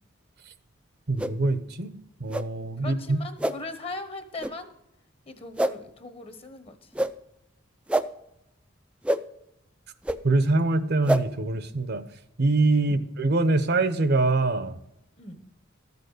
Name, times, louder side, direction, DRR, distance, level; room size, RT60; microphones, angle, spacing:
voice 1, 1.1-1.9 2.2-3.2 10.2-12.0 12.4-14.8, right 2 dB, 55° right, 12 dB, 0.8 m, -24 dB
sound 1, 1.2-1.3 2.3-2.4 3.4-3.5 4.4-4.5 5.6-5.7 6.9-7.1 7.9-8.0 9.0-9.2 10.0-10.2 11.0-11.2, right 1 dB, 5° right, 0.4 m, -25 dB
voice 2, 2.8-4.7 5.3-6.9 12.8-13.1 15.2-15.5, left 2 dB, 30° left, 8 dB, 1.1 m, -39 dB
13.0 x 6.8 x 6.5 m, 0.84 s
head